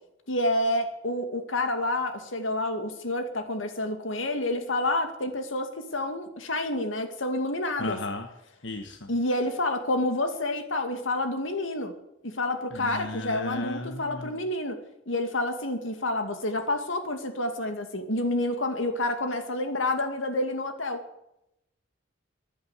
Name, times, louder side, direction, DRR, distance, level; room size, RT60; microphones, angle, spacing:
voice 1, 0.3-8.0 9.1-11.9 12.2-14.8 15.1-21.0, left 1 dB, 90° left, 7 dB, 2.3 m, -29 dB
voice 2, 7.8-8.3 8.6-9.1 12.7-14.4, left 2 dB, 65° left, 5 dB, 1.4 m, -35 dB
14.5 x 10.5 x 8.3 m, 0.83 s
head